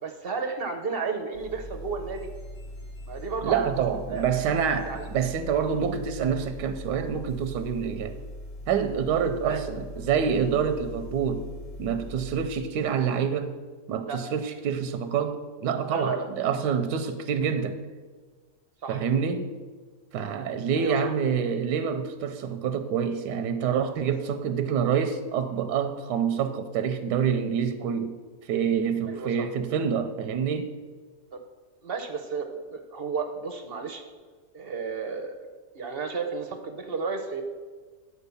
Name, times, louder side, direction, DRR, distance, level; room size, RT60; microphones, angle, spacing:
voice 1, 0.0-2.3 3.1-3.7 4.1-4.2 4.8-5.1 9.4-9.6 14.0-14.2 15.9-16.3 18.8-19.0 20.8-21.1 29.1-29.5 31.3-31.4 31.8-34.0 34.5-35.4 35.7-37.4, right 5 dB, 50° right, 0.7 m, -32 dB
sound 1, 1.3-12.5, left 1 dB, 60° left, 3.0 m, -41 dB
voice 2, 3.4-8.2 8.7-11.5 11.8-13.5 13.9-17.8 18.9-19.5 20.1-28.2 28.4-30.7, right 7 dB, 85° right, 1.2 m, -27 dB
9.7 x 4.5 x 6.9 m
omnidirectional pair, 1.8 m